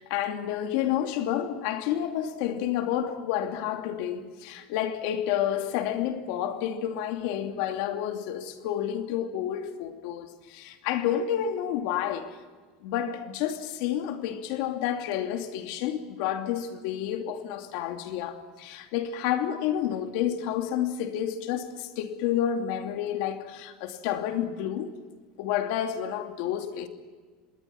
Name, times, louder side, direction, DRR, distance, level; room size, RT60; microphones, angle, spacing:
voice 1, 0.0-12.3 12.8-24.9 25.4-26.9, left 10 dB, 70° left, 2.7 m, -30 dB
27.0 x 21.0 x 5.9 m
supercardioid pair, 140°, 0 cm